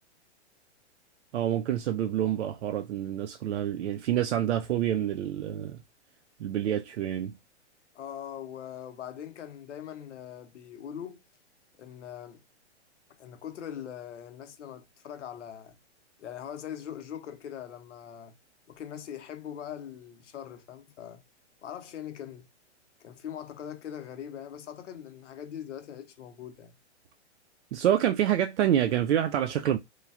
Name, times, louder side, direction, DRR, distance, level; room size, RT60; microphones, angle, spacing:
voice 1, 1.3-5.8 6.4-7.3 27.7-29.8, right 11 dB, 80° right, 0.5 m, -27 dB
voice 2, 7.9-11.2 11.8-12.4 13.2-15.8 16.2-18.4 18.7-21.2 21.6-22.5 23.0-26.7, left 9 dB, 90° left, 0.7 m, -41 dB
3.1 x 2.2 x 2.4 m
hypercardioid pair, 170°, 35 cm